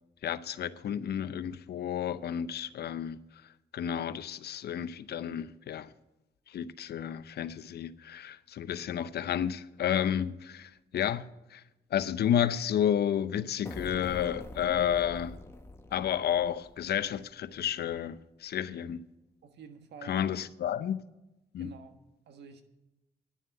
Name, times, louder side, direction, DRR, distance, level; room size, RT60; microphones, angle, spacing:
voice 1, 0.2-3.2 3.7-5.9 6.5-11.2 11.5-11.6 11.9-15.3 15.9-19.0 20.0-21.0 21.5-21.7, left 9 dB, 70° left, 0.7 m, -31 dB
sound 1, 13.7-17.3, left 1 dB, 15° left, 1.2 m, -45 dB
voice 2, 19.4-20.2 21.6-22.6, right 6 dB, 85° right, 1.4 m, -49 dB
11.0 x 7.4 x 9.6 m
cardioid pair, 90°, 17 cm